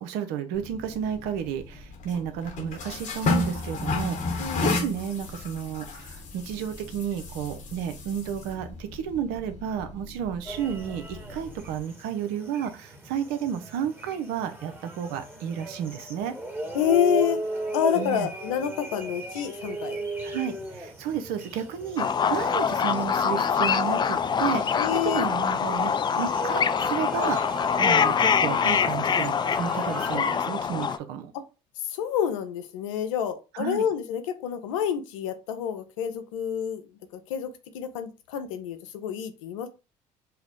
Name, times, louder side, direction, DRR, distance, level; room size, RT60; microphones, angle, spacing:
voice 1, 0.0-16.3 17.9-18.3 20.2-24.8 25.0-31.3 33.5-33.9, right 8 dB, 75° right, 0.6 m, -32 dB
sound 1, 0.5-11.8, left 3 dB, 50° left, 1.0 m, -33 dB
voice 2, 4.4-4.8 16.7-17.4 17.7-20.1 24.8-25.3 31.3-31.4 31.8-36.8 37.1-39.7, left 9 dB, 90° left, 0.6 m, -28 dB
sound 2, 10.5-30.4, right 1 dB, 10° right, 1.1 m, -37 dB
sound 3, 22.0-31.0, left 7 dB, 30° left, 0.3 m, -24 dB
4.8 x 2.0 x 2.9 m
hypercardioid pair, 65°, 16 cm